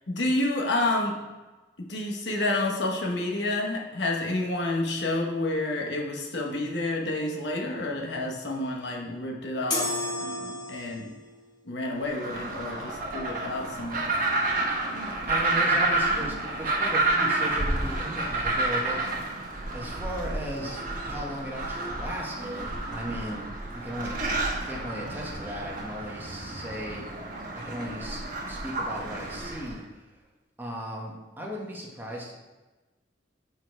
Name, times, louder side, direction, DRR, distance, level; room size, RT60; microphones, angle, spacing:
voice 1, 0.1-1.1 1.9-9.9 10.2-11.1 11.6-14.1, left 2 dB, 70° left, 0 dB, 1.1 m, -29 dB
sound 1, 9.7-11.2, left 2 dB, 25° left, 1.4 m, -31 dB
sound 2, 12.0-29.8, right 2 dB, 50° right, 1.2 m, -30 dB
voice 2, 15.3-19.3 19.7-27.0 27.5-28.2 28.5-30.2 30.6-32.4, equal, 10° right, -2 dB, 1.2 m, -37 dB
sound 3, 20.8-22.1 22.4-22.7 23.0-24.4 24.7-25.7, equal, 5° left, 1.4 m, -48 dB
7.3 x 4.6 x 4.5 m, 1.2 s
head